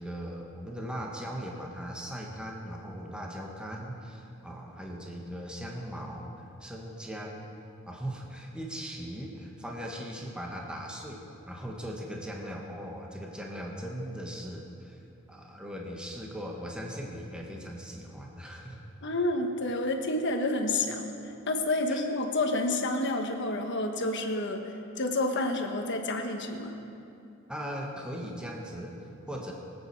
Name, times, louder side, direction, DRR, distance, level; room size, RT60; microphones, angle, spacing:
voice 1, 0.0-6.3 6.6-7.5 7.9-15.0 15.3-18.8 21.9-22.0 27.5-29.5, equal, 5° right, -1 dB, 1.3 m, -39 dB
voice 2, 19.0-26.7, left 2 dB, 60° left, 4 dB, 1.3 m, -29 dB
23.0 x 8.6 x 4.7 m, 2.7 s
head